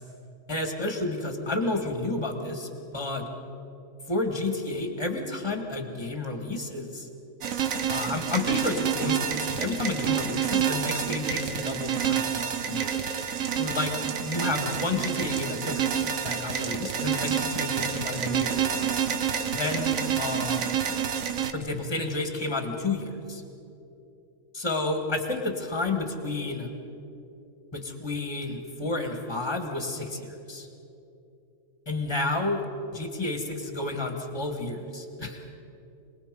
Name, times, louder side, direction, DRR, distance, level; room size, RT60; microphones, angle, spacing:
voice 1, 0.5-3.3 4.1-7.1 7.9-12.9 13.6-15.8 16.2-18.5 19.5-19.9 20.2-20.6 21.5-23.4 24.5-26.7 27.7-30.7 31.9-32.6 32.9-35.4, left 2 dB, 15° left, 4 dB, 2.0 m, -31 dB
sound 1, 7.4-21.5, right 8 dB, 60° right, 1.3 m, -28 dB
26.0 x 20.0 x 5.4 m, 2.8 s
omnidirectional pair, 1.7 m